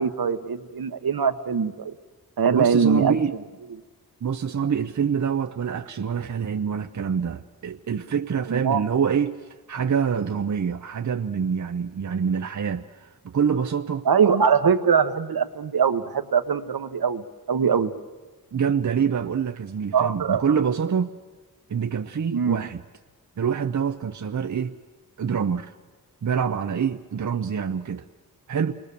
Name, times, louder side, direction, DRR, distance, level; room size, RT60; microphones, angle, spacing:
voice 1, 0.0-1.9 2.4-3.2 8.5-8.8 14.0-17.9 19.9-20.4 22.3-22.6, right 6 dB, 65° right, 1.2 m, -22 dB
voice 2, 2.5-3.3 4.2-9.4 9.7-14.1 18.5-21.1 21.7-22.8 23.4-24.8 25.2-25.7 26.2-28.0 28.5-28.7, right 7 dB, 50° right, 0.8 m, -26 dB
29.0 x 21.5 x 6.9 m
wide cardioid pair, 140°, 38 cm